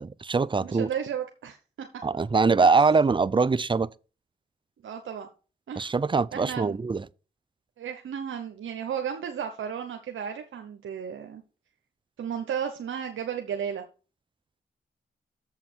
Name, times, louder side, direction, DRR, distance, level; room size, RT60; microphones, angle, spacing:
voice 1, 0.0-0.9 2.0-3.9 5.8-7.1, right 4 dB, 25° right, 0.5 m, -23 dB
voice 2, 0.6-2.0 4.8-5.3 5.7-5.9 6.3-6.8 7.8-11.4 12.2-13.8, right 8 dB, 80° right, 0.9 m, -34 dB
7.2 x 5.7 x 6.1 m
supercardioid pair, 45°, 20 cm